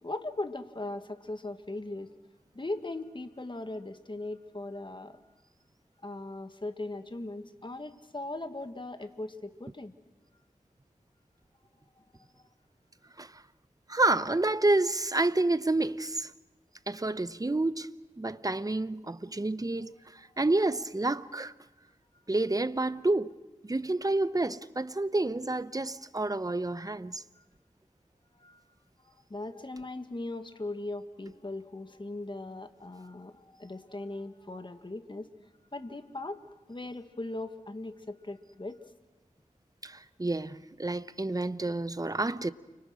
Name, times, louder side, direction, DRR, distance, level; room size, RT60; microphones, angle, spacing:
voice 1, 0.0-2.1 2.5-5.2 6.0-9.9 12.0-12.1 27.4-27.5 28.4-28.6 29.3-35.3 35.7-38.8, left 2 dB, 35° left, 1.8 m, -39 dB
voice 2, 13.9-16.3 16.9-17.9 18.2-21.5 22.3-23.3 23.6-27.2 39.8-42.5, right 2 dB, 25° right, 0.8 m, -29 dB
29.5 x 25.0 x 6.3 m
wide cardioid pair, 55°, 14 cm